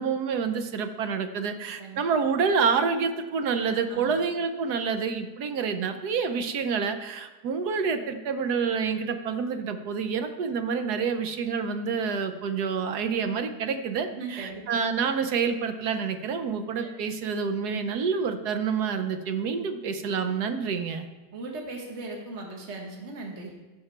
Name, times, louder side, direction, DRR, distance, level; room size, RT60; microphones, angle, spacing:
voice 1, 0.0-21.1, right 6 dB, 70° right, 8 dB, 1.3 m, -28 dB
voice 2, 14.1-14.8 16.8-16.9 21.3-23.5, right 3 dB, 40° right, 1 dB, 1.7 m, -38 dB
15.0 x 5.9 x 4.4 m, 1.3 s
omnidirectional pair, 1.8 m